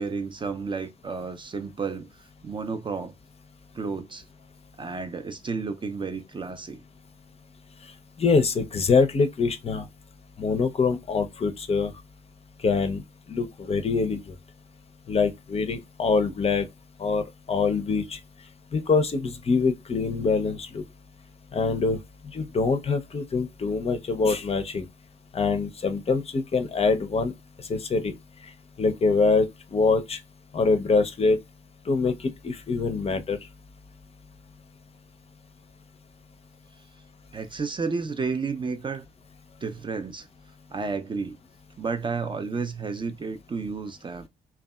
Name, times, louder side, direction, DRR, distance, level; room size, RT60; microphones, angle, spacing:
voice 1, 0.0-3.1 3.7-4.2 4.8-6.8 37.3-39.1 39.6-40.3 40.7-41.4 41.8-44.3, right 4 dB, 25° right, 0.4 m, -31 dB
voice 2, 8.2-9.8 10.4-11.9 12.6-13.0 13.3-14.3 15.1-16.7 17.0-18.2 18.7-20.8 21.5-22.0 22.3-24.9 25.3-27.3 27.7-28.1 28.8-29.5 29.7-30.2 30.5-31.4 31.9-33.4, left 4 dB, 35° left, 0.5 m, -24 dB
2.6 x 2.2 x 2.2 m
hypercardioid pair, 40°, 19 cm